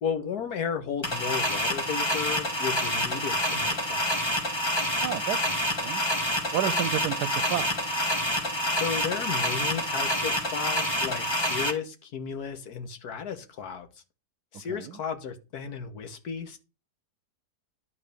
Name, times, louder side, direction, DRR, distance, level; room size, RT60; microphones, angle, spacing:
voice 1, 0.0-4.2 8.7-13.9 14.5-16.6, left 7 dB, 75° left, 1.7 m, -34 dB
sound 1, 1.0-11.7, equal, 15° left, 1.4 m, -27 dB
voice 2, 5.0-5.6 5.8-6.0 6.5-7.8 14.7-14.9, right 11 dB, 90° right, 1.2 m, -30 dB
11.0 x 4.0 x 6.6 m
omnidirectional pair, 1.7 m